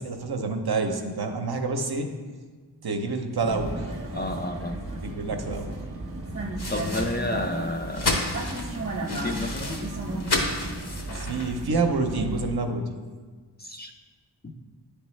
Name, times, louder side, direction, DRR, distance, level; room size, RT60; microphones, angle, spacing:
voice 1, 0.0-2.1 2.8-3.8 5.0-5.7 11.1-13.0, right 3 dB, 60° right, 4 dB, 0.7 m, -28 dB
Vehicle, 3.4-12.5, right 2 dB, 30° right, 0.9 m, -34 dB
voice 2, 4.1-4.8 6.7-8.2 9.1-9.8 13.6-13.9 14.4-14.5, left 2 dB, 25° left, 2 dB, 0.4 m, -31 dB
sound 1, 6.6-11.7, left 2 dB, 65° left, 0.9 m, -32 dB
9.6 x 3.3 x 3.1 m, 1.4 s
wide cardioid pair, 40°, 42 cm